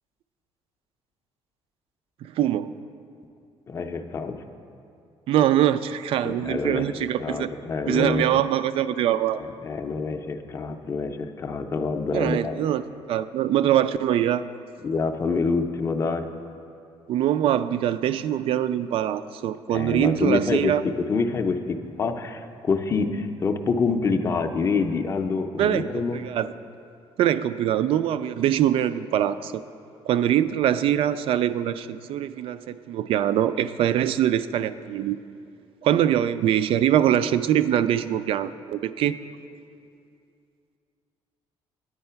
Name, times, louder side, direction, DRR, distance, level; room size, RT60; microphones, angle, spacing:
voice 1, 2.2-2.7 5.3-7.5 7.9-9.4 12.1-12.8 13.1-14.4 17.1-20.8 25.6-26.5 27.2-29.6 30.1-35.2 35.8-39.2, right 11 dB, 60° right, 14 dB, 0.4 m, -23 dB
voice 2, 3.7-4.4 6.2-8.2 9.4-12.6 14.8-16.3 19.7-20.7 21.1-26.2, left 4 dB, 30° left, 6 dB, 0.5 m, -26 dB
9.6 x 8.7 x 5.6 m, 2.5 s
cardioid pair, 155°, 10 cm